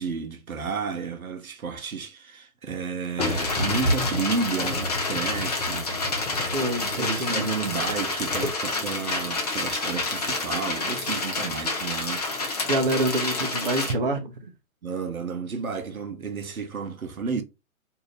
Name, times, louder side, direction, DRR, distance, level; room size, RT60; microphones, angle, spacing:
voice 1, 0.0-6.4 6.8-12.7 14.8-17.4, right 5 dB, 80° right, 0.7 m, -32 dB
sound 1, 3.2-8.0 8.3-8.5, left 1 dB, 70° left, 1.0 m, -31 dB
sound 2, 3.2-13.9, left 3 dB, 30° left, 0.5 m, -29 dB
voice 2, 6.5-7.5 12.6-14.5, right 1 dB, 40° right, 0.6 m, -27 dB
2.7 x 2.4 x 3.0 m
figure-of-eight pair, 130°, 42 cm